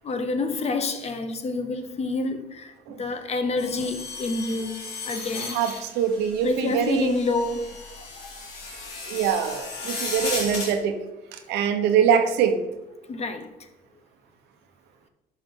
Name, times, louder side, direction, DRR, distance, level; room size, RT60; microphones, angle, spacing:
voice 1, 0.0-4.8 5.0-5.6 6.4-8.3 13.1-13.7, left 3 dB, 40° left, 1.0 m, -28 dB
sound 1, 3.6-10.7, left 3 dB, 85° left, 3.0 m, -35 dB
voice 2, 5.5-7.1 9.1-11.0 11.3-12.6, right 7 dB, 85° right, 1.0 m, -23 dB
11.5 x 5.6 x 3.8 m
cardioid pair, 110°, 17 cm